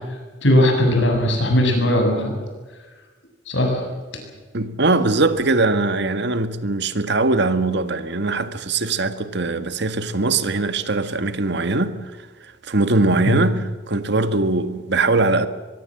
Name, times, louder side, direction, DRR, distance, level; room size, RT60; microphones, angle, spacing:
voice 1, 0.4-2.3 3.5-3.8 13.3-13.4, left 1 dB, 70° left, 7.8 m, -18 dB
voice 2, 4.5-12.3 12.6-15.5, right 3 dB, 65° right, 1.6 m, -21 dB
23.5 x 23.0 x 7.7 m
head